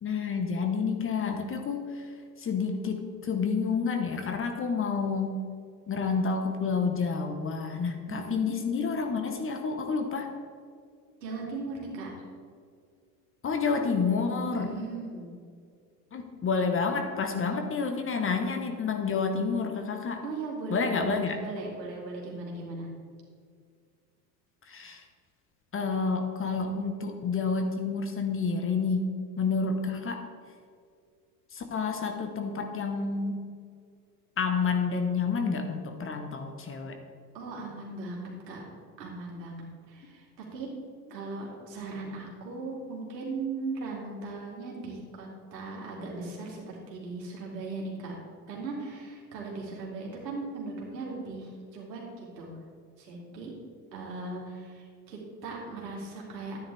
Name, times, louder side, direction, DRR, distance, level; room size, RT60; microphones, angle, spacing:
voice 1, 0.0-2.1 2.4-5.4 5.9-10.3 13.4-14.7 16.1-20.2 20.7-21.4 24.7-25.0 25.7-29.1 29.4-30.2 31.5-33.4 34.4-37.0, left 5 dB, 25° left, 5 dB, 1.2 m, -29 dB
voice 2, 8.1-8.5 11.2-12.1 14.5-15.3 20.2-22.9 37.3-38.6 39.0-40.2 40.5-40.7 41.1-48.1 48.5-52.5 53.0-53.5 53.9-56.6, right 3 dB, 75° right, -3 dB, 3.0 m, -38 dB
12.0 x 9.9 x 3.5 m, 2.2 s
figure-of-eight pair, 80°, 50 cm